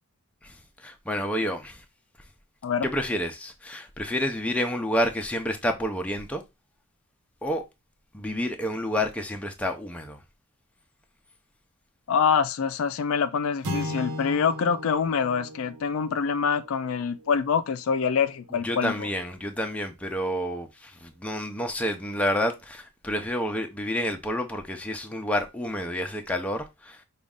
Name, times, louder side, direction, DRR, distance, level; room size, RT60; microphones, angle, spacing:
voice 1, 0.4-1.8 2.8-6.4 7.4-7.6 8.1-10.2 18.6-27.0, equal, 5° left, 0.5 m, -29 dB
voice 2, 12.1-19.1, left 6 dB, 65° left, 0.4 m, -25 dB
sound 1, 13.6-18.1, left 1 dB, 85° right, 1.1 m, -37 dB
5.1 x 2.4 x 3.5 m
head